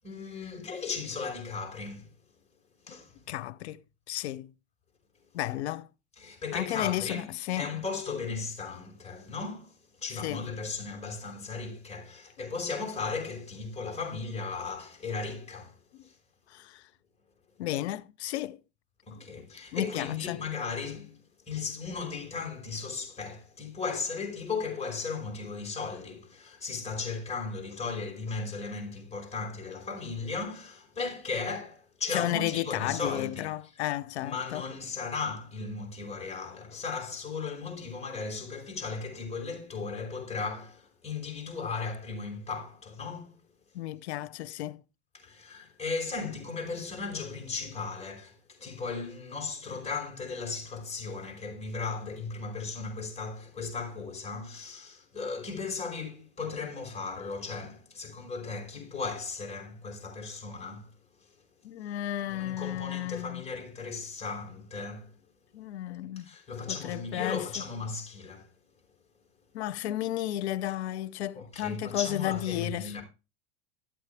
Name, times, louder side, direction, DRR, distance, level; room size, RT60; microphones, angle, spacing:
voice 1, 0.0-2.1 2.8-3.2 6.2-7.3 7.6-15.8 16.0-16.2 19.1-21.2 21.5-33.5 34.2-43.3 45.1-60.9 61.2-61.3 62.3-65.2 66.2-68.5 71.4-73.0, left 4 dB, 20° left, 5.1 m, -36 dB
voice 2, 3.3-3.8 4.1-4.5 5.3-5.9 6.5-7.7 10.2-10.5 16.5-16.8 17.6-18.6 19.7-20.4 32.1-34.6 43.7-44.8 61.6-63.4 65.5-66.3 66.7-67.5 69.5-73.0, left 13 dB, 85° left, 0.8 m, -33 dB
12.5 x 8.0 x 3.4 m
supercardioid pair, 115°, 32 cm